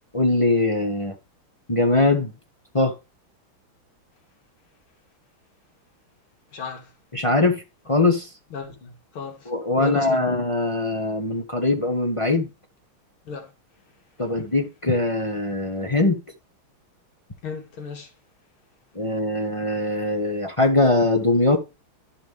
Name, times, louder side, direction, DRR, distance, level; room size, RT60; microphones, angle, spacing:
voice 1, 0.1-1.1 1.7-2.3 2.7-2.9 7.1-8.3 9.5-12.5 14.2-16.2 18.9-21.6, left 2 dB, 25° left, 0.8 m, -21 dB
voice 2, 6.5-6.9 8.5-9.5 9.8-10.3 13.3-13.5 17.4-18.1, left 5 dB, 85° left, 2.9 m, -35 dB
12.5 x 5.1 x 3.3 m
omnidirectional pair, 2.3 m